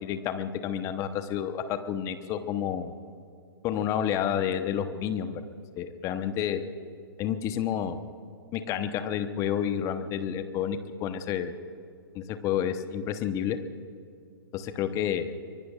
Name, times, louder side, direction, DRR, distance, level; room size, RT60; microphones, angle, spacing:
voice 1, 0.0-2.9 3.6-5.4 5.8-6.6 7.2-8.0 8.5-11.5 12.1-13.6 14.5-15.3, left 9 dB, 25° left, 10 dB, 1.0 m, -30 dB
24.5 x 22.5 x 2.5 m, 2.4 s
figure-of-eight pair, 120°, 13 cm